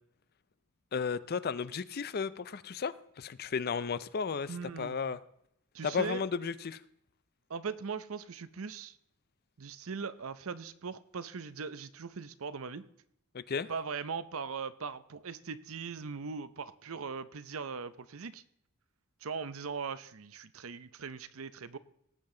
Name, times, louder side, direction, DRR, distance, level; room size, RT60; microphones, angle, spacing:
voice 1, 0.9-5.2 5.8-6.8 13.3-13.7, left 5 dB, 45° left, 16 dB, 0.5 m, -34 dB
voice 2, 4.5-5.1 5.7-6.2 7.5-9.0 9.6-12.8 13.7-18.4 19.2-21.8, right 5 dB, 65° right, 14 dB, 0.7 m, -40 dB
18.0 x 7.5 x 3.8 m, 0.73 s
head